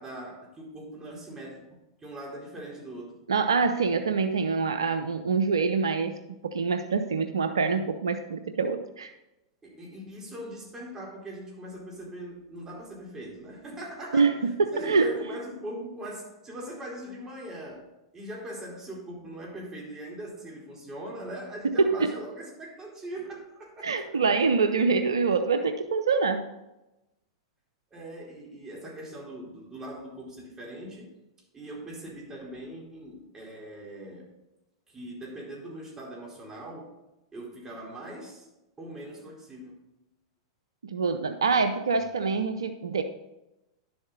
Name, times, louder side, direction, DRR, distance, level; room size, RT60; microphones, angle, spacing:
voice 1, 0.0-1.6 2.0-3.2 9.6-14.4 14.7-17.9 18.1-24.2 27.9-31.1 31.5-34.3 34.9-36.9 37.3-38.5 38.8-39.8 41.5-41.7, right 1 dB, 20° right, -2 dB, 4.3 m, -41 dB
voice 2, 3.3-6.2 6.4-9.1 14.1-15.1 21.6-22.1 23.8-26.5 40.8-43.0, right 4 dB, 85° right, 9 dB, 0.6 m, -25 dB
11.0 x 7.8 x 4.0 m, 0.94 s
hypercardioid pair, 100°, 2 cm